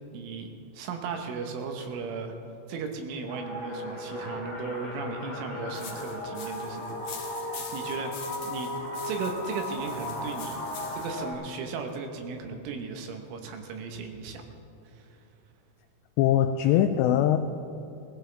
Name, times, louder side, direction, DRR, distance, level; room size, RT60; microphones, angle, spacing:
voice 1, 0.1-2.4 2.7-8.7 9.0-14.4 14.9-15.1, right 5 dB, 80° right, 4 dB, 3.6 m, -36 dB
sound 1, 3.3-11.3, left 1 dB, 40° left, 4.3 m, -36 dB
sound 2, 5.7-11.2, left 6 dB, 65° left, 2.2 m, -45 dB
voice 2, 16.2-17.4, left 11 dB, 85° left, 8 dB, 2.5 m, -22 dB
19.5 x 15.0 x 3.4 m, 2.9 s
omnidirectional pair, 5.5 m